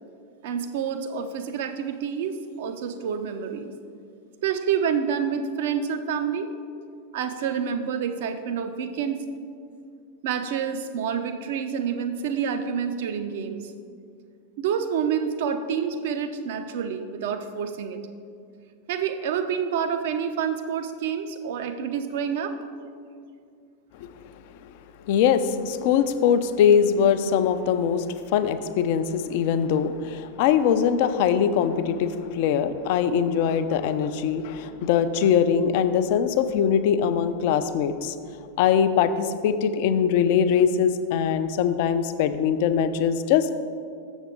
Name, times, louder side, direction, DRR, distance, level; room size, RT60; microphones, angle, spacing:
voice 1, 0.4-3.7 4.4-6.5 7.1-9.2 10.2-13.7 14.6-18.0 18.9-22.5, right 7 dB, 55° right, 8 dB, 0.5 m, -28 dB
voice 2, 25.1-28.0 28.3-38.1 38.6-43.5, left 8 dB, 50° left, 11 dB, 0.4 m, -22 dB
7.1 x 7.1 x 3.8 m, 2.3 s
figure-of-eight pair, 90°, 0 cm